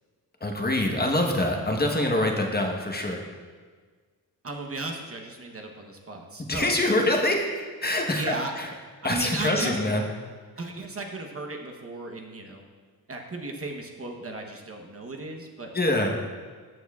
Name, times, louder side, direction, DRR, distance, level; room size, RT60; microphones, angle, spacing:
voice 1, 0.4-3.2 6.5-7.5 7.8-8.7 9.0-10.0 15.7-16.1, left 1 dB, 25° left, 1 dB, 1.1 m, -25 dB
voice 2, 4.4-6.8 8.1-8.5 9.0-9.8 10.6-12.6 13.1-15.7, right 2 dB, 35° right, 2 dB, 1.0 m, -35 dB
13.5 x 7.1 x 2.4 m, 1.5 s
cardioid pair, 90°, 38 cm